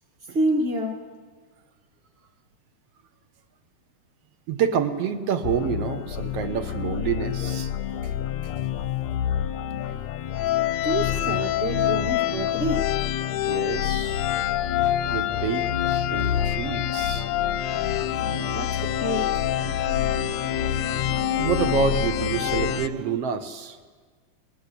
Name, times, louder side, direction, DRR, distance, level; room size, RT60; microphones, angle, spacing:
voice 1, 0.3-1.1 9.7-9.8 10.8-13.0 18.2-19.5, right 1 dB, 25° right, 1.7 m, -28 dB
voice 2, 4.5-7.7 8.4-8.5 13.5-14.2 15.1-15.6 15.9-17.3 21.4-23.8, right 7 dB, 60° right, 1.8 m, -28 dB
sound 1, 5.4-22.9, left 11 dB, 70° left, 1.7 m, -26 dB
sound 2, 13.2-23.2, right 9 dB, 80° right, 1.2 m, -42 dB
20.5 x 19.0 x 8.3 m
omnidirectional pair, 3.7 m